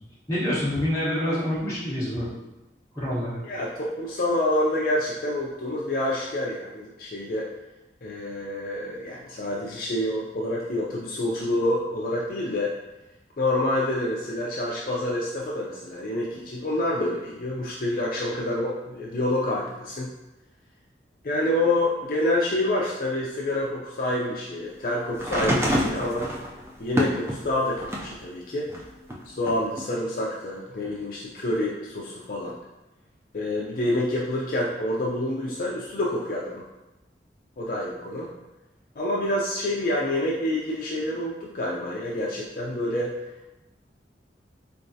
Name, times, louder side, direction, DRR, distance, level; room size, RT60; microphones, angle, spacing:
voice 1, 0.3-2.3 2.9-3.4, equal, 15° left, -9 dB, 1.1 m, -27 dB
voice 2, 3.4-7.5 8.0-12.7 13.4-20.1 21.2-26.3 26.8-28.7 29.3-32.6 33.3-36.6 37.6-38.3 39.0-43.1, left 1 dB, 50° left, -4 dB, 0.4 m, -27 dB
sound 1, 25.1-28.2 28.7-29.8 30.8-30.9, equal, 15° right, 0.4 m, -27 dB
3.8 x 3.4 x 2.7 m, 1.0 s
head